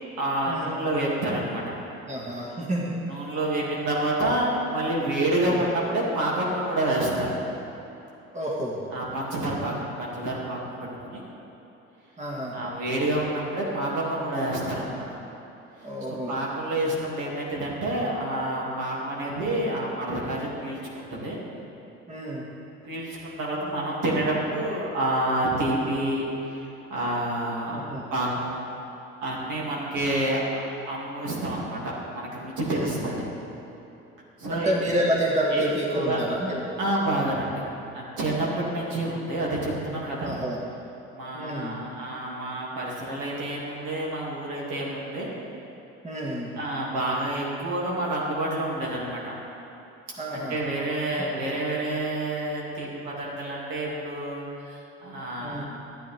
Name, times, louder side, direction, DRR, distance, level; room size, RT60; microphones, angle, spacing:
voice 1, 0.2-1.7 3.1-7.3 8.9-11.2 12.5-15.1 15.8-21.4 22.8-26.3 26.9-27.8 28.1-28.6 29.2-30.4 30.9-33.2 34.4-34.7 35.5-35.7 35.9-36.2 36.8-37.6 37.9-40.3 41.1-45.3 46.6-49.3 50.3-55.6, right 1 dB, 60° right, -4 dB, 2.4 m, -28 dB
voice 2, 2.1-2.9 5.5-5.6 8.3-8.8 12.2-12.6 15.8-16.3 22.1-22.5 27.7-28.0 32.7-33.1 34.5-36.7 40.2-40.6 41.3-41.8 46.0-46.5 50.2-50.6 55.4-55.6, right 1 dB, 20° right, -3 dB, 1.7 m, -29 dB
12.5 x 9.0 x 3.5 m, 3.0 s
hypercardioid pair, 60°, 34 cm